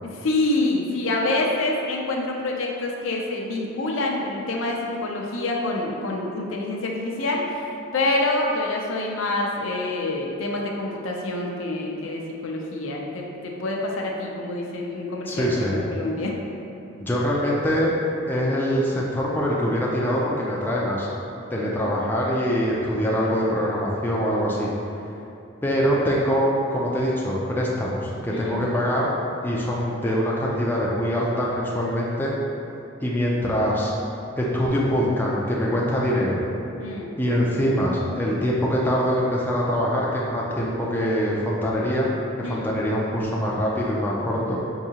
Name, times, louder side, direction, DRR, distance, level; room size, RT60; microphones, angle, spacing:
voice 1, 0.0-7.6 7.9-16.3 21.6-21.9 28.3-28.7 36.8-37.1 42.4-42.7, left 2 dB, 70° left, -1 dB, 0.5 m, -27 dB
voice 2, 15.3-15.8 17.0-17.9 18.3-21.1 21.5-24.7 25.6-29.1 29.4-32.3 33.0-33.9 34.4-36.4 37.2-42.1 42.4-44.6, equal, 10° left, -5 dB, 0.4 m, -24 dB
4.7 x 2.7 x 2.8 m, 2.8 s
head